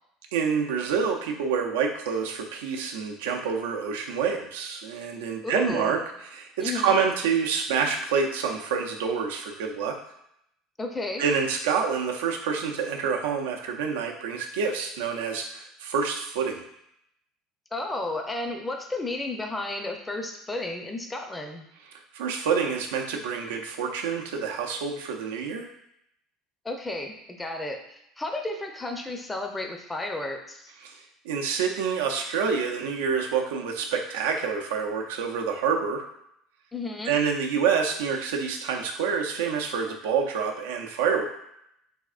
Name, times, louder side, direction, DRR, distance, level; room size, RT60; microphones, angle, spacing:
voice 1, 0.3-6.0 6.3-10.0 11.2-16.6 22.1-25.7 30.8-31.0 31.2-36.1 37.1-41.3, right 6 dB, 85° right, 1 dB, 0.5 m, -27 dB
voice 2, 5.4-6.0 6.6-7.0 10.8-11.3 17.7-21.6 26.6-30.7 36.7-37.2, left 2 dB, 15° left, 4 dB, 0.5 m, -32 dB
3.4 x 3.4 x 2.4 m, 0.77 s
supercardioid pair, 90°, 0 cm